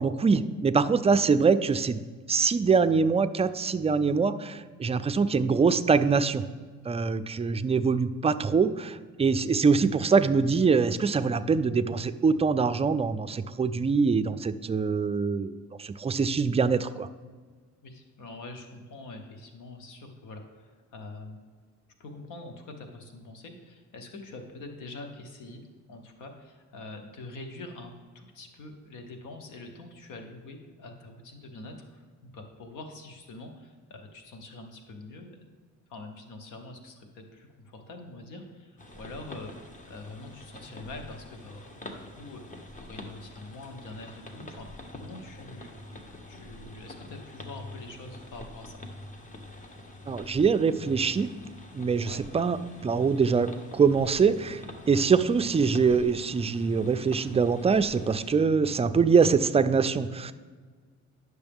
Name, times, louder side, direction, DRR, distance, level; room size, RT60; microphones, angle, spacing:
voice 1, 0.0-2.0 2.3-6.4 6.8-17.1 50.1-51.3 51.7-52.6 52.8-60.3, right 5 dB, 20° right, 11 dB, 0.3 m, -24 dB
voice 2, 17.8-21.4 22.0-25.6 25.9-35.4 35.9-45.7 46.3-48.8 52.0-52.2, left 2 dB, 90° left, 5 dB, 1.1 m, -45 dB
sound 1, 38.8-58.3, left 1 dB, 25° left, 1.0 m, -46 dB
9.7 x 6.4 x 3.5 m, 1.5 s
cardioid pair, 90°, 30 cm